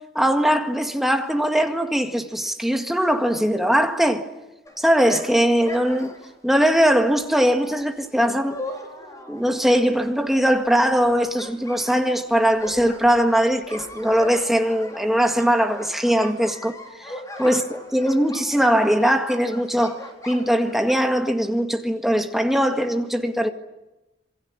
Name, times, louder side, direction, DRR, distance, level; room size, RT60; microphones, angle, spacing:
voice 1, 0.2-4.3 4.8-6.1 6.4-8.6 9.3-20.0 20.2-23.5, equal, ahead, 1.8 m, -20 dB
sound 1, 4.6-21.1, left 1 dB, 20° left, 4.3 m, -39 dB
27.5 x 22.5 x 9.5 m
head